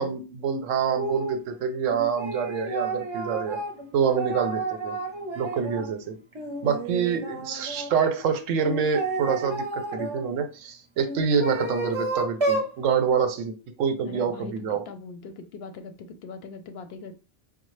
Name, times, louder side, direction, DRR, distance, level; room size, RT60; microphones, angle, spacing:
voice 1, 0.0-3.6 3.9-4.9 5.3-6.2 6.6-14.8, right 6 dB, 85° right, 8 dB, 1.0 m, -26 dB
sound 1, 1.0-1.4 1.9-5.9 6.3-7.9 8.6-10.2 11.0-12.7, right 2 dB, 25° right, 0.7 m, -31 dB
voice 2, 14.1-17.2, left 4 dB, 60° left, 8 dB, 0.8 m, -41 dB
5.2 x 2.1 x 3.2 m, 0.33 s
omnidirectional pair, 1.3 m